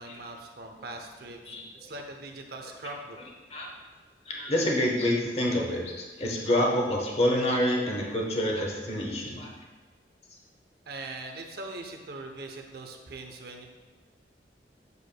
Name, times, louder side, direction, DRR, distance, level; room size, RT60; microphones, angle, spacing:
voice 1, 0.0-3.2 10.9-13.6, right 2 dB, 60° right, 4 dB, 0.7 m, -41 dB
voice 2, 4.2-9.5, left 1 dB, 35° left, -1 dB, 1.0 m, -27 dB
8.1 x 6.8 x 2.2 m, 1.3 s
head